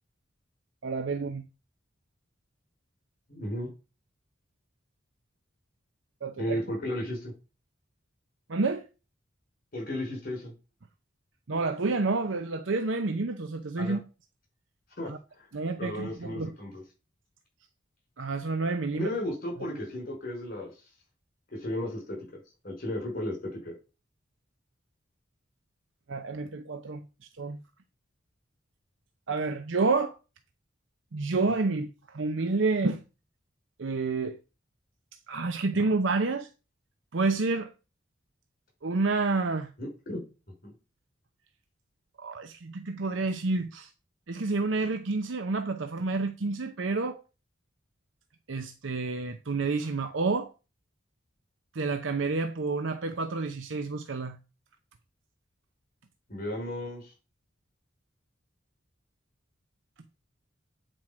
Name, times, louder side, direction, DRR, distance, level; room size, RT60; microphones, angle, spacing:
voice 1, 0.8-1.4 6.2-6.6 8.5-8.8 11.5-14.0 15.1-15.2 15.5-16.5 18.2-19.1 26.1-27.0 27.4-27.6 29.3-30.1 31.1-33.0 33.8-34.4 35.3-36.5 37.1-37.7 38.8-39.7 42.2-43.9 44.3-47.2 48.5-50.5 51.7-54.4, right 3 dB, 85° right, 0.7 m, -29 dB
voice 2, 3.3-3.7 6.4-7.3 9.7-10.5 13.8-14.0 15.0-15.5 15.8-16.8 18.9-20.7 21.5-22.3 22.6-23.7 39.8-40.2 40.6-40.7 56.3-57.1, left 1 dB, 50° left, 5.4 m, -34 dB
9.0 x 4.6 x 5.9 m
head